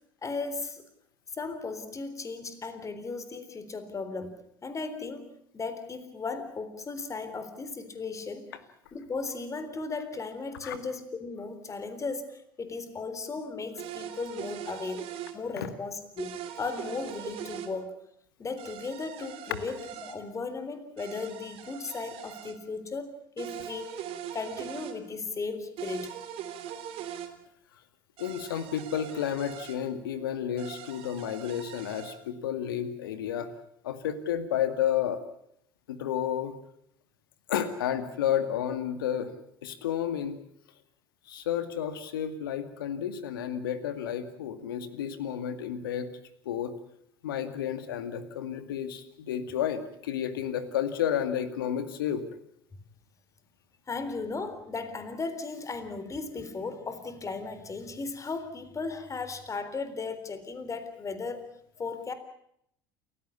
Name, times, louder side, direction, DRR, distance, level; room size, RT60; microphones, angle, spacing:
voice 1, 0.2-0.8 1.3-8.5 8.9-17.9 18.4-23.9 24.3-26.1 53.9-61.4 61.8-62.1, left 4 dB, 30° left, 11 dB, 3.8 m, -36 dB
sound 1, 13.8-15.4 16.2-17.7 18.6-20.2 21.0-22.6 23.4-25.0 25.8-27.3 28.2-29.8 30.6-32.2, right 10 dB, 55° right, 3.3 m, -41 dB
voice 2, 28.2-33.5 33.8-35.2 35.9-36.5 37.5-39.3 39.6-40.3 41.3-46.1 46.5-46.7 47.2-52.2, left 9 dB, 80° left, 11 dB, 2.3 m, -31 dB
29.0 x 15.5 x 8.5 m, 0.72 s
hypercardioid pair, 70°, 11 cm